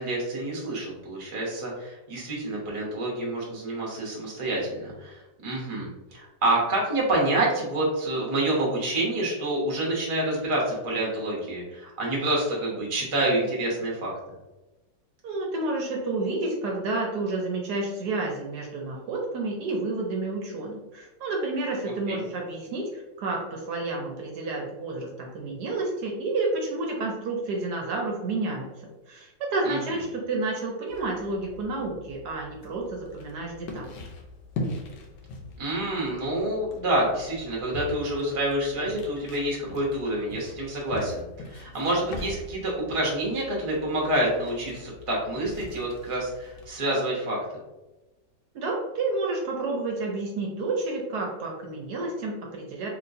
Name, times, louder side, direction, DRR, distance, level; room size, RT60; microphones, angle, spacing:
voice 1, 0.0-14.1 22.1-22.2 29.6-29.8 35.6-47.4, right 1 dB, 35° right, -3 dB, 0.5 m, -28 dB
voice 2, 15.2-28.7 29.1-33.9 48.5-52.9, right 2 dB, 70° right, 0 dB, 1.1 m, -30 dB
sound 1, 30.9-46.8, left 2 dB, 75° left, 1.2 m, -41 dB
3.2 x 2.9 x 2.6 m, 1.0 s
omnidirectional pair, 2.0 m